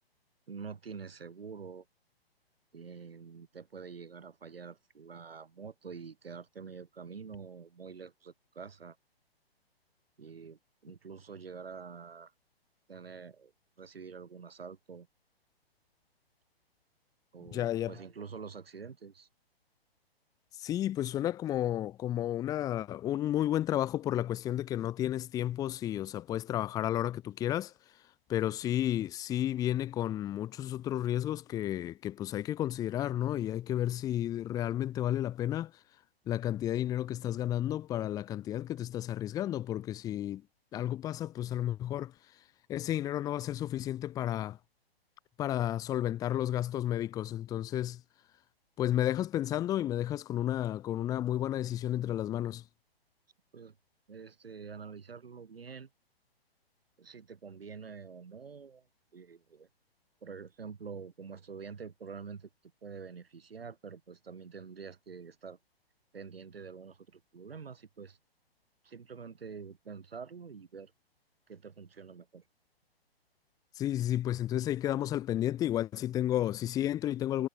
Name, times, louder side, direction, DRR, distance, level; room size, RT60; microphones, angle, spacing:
voice 1, 0.5-1.9 2.7-9.0 10.2-12.3 12.9-13.5 13.8-15.1 17.3-19.3 53.5-53.8 54.1-55.9 57.0-58.9 59.1-59.7 60.2-62.5 62.8-65.6 66.1-68.2 68.8-70.9 71.5-72.4, right 5 dB, 70° right, 6.1 m, -46 dB
voice 2, 17.5-17.9 20.6-27.7 28.3-35.7 36.3-40.4 40.7-42.1 42.7-44.6 45.4-48.0 48.8-52.6 73.8-77.5, left 12 dB, 10° left, 1.4 m, -32 dB
hypercardioid pair, 145°, 31 cm